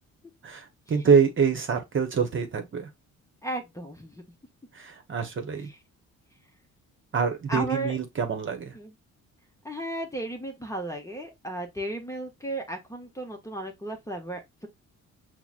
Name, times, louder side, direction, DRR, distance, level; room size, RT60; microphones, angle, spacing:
voice 1, 0.4-2.9 4.7-5.7 7.1-8.7, right 6 dB, 40° right, 1.0 m, -25 dB
voice 2, 3.4-4.2 7.5-7.9 8.7-8.9 9.6-14.7, right 1 dB, 10° left, 0.9 m, -34 dB
5.8 x 2.2 x 2.4 m
cardioid pair, 90°, 30 cm